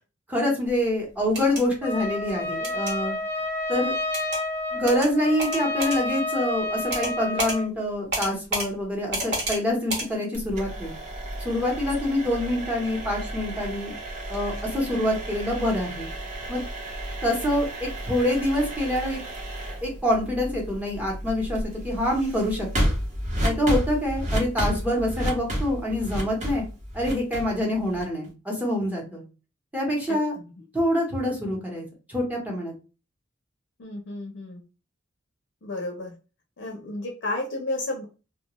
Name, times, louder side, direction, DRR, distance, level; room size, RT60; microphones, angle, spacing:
voice 1, 0.3-3.1 3.7-3.9 4.7-10.9 11.4-13.9 14.3-16.1 16.5-16.6 17.2-19.2 19.8-21.6 21.8-22.9 23.4-26.6 26.9-29.2 29.7-30.3 30.7-32.7, left 1 dB, 10° right, -2 dB, 0.9 m, -26 dB
sound 1, 1.2-1.6 2.6-2.9 4.1-4.4 4.9-5.1 5.4-6.0 6.9-7.1 7.4-7.6 8.1-8.7 9.1-9.6 9.9-10.1, right 1 dB, 60° right, 1.1 m, -29 dB
Trumpet, 1.8-7.7, left 2 dB, 15° left, 0.6 m, -29 dB
sound 2, 10.3-28.3, equal, 40° right, 0.8 m, -32 dB
voice 2, 33.8-34.6 35.6-36.1 36.6-38.0, left 2 dB, 65° left, 1 dB, 0.6 m, -32 dB
2.3 x 2.2 x 2.9 m, 0.32 s
head